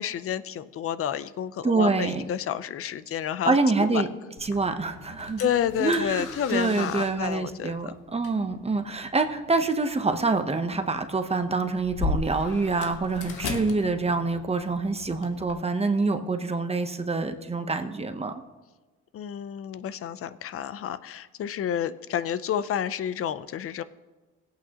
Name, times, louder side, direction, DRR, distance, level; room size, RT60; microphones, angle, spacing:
voice 1, 0.0-4.0 5.4-7.9 19.1-23.8, left 9 dB, 50° left, 15 dB, 0.5 m, -30 dB
voice 2, 1.6-2.3 3.4-4.1 4.4-5.5 5.8-18.3, right 3 dB, 20° right, 7 dB, 0.8 m, -26 dB
sound 1, 4.4-15.5, left 4 dB, 90° left, 1.2 m, -38 dB
18.0 x 8.5 x 2.9 m, 1.2 s
cardioid pair, 90°, 30 cm